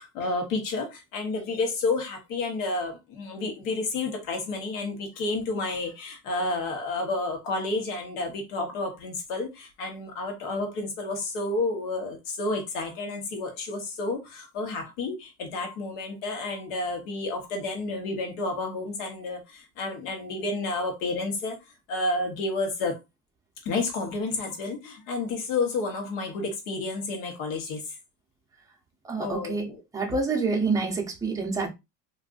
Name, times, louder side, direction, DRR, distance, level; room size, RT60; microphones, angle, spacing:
voice 1, 0.0-21.5 21.9-23.0 23.6-27.8 29.2-29.8, left 2 dB, 75° left, 1.1 m, -30 dB
voice 2, 29.1-29.7 29.9-31.7, right 4 dB, 10° right, 0.6 m, -27 dB
3.6 x 2.6 x 2.5 m
cardioid pair, 155°, 43 cm